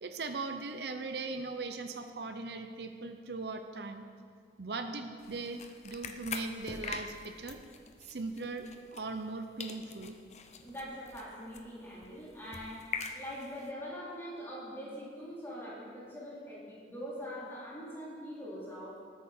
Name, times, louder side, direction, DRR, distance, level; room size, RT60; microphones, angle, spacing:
voice 1, 0.0-4.1 4.6-7.6 8.0-10.2, right 3 dB, 65° right, 7 dB, 0.7 m, -39 dB
sound 1, 5.2-9.3 9.6-13.7, left 5 dB, 40° left, 0.7 m, -44 dB
voice 2, 10.6-12.9 13.1-19.0, equal, 15° left, -8 dB, 4.0 m, -43 dB
19.5 x 8.5 x 4.5 m, 2.1 s
head